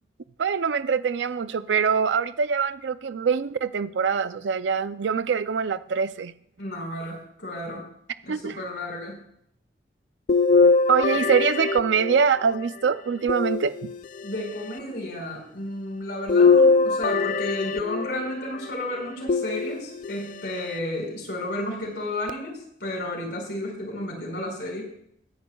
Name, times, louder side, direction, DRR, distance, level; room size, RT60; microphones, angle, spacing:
voice 1, 0.4-6.3 8.3-8.6 10.9-13.9, right 6 dB, 85° right, 0.4 m, -24 dB
voice 2, 6.6-7.9 8.2-9.2 11.1-11.2 14.2-24.9, left 1 dB, 70° left, 5.2 m, -32 dB
sound 1, 10.3-12.6 13.3-14.3 16.3-18.4 19.3-20.2 20.8-20.9 22.3-22.4, left 4 dB, 45° left, 0.3 m, -21 dB
21.0 x 10.5 x 2.3 m
head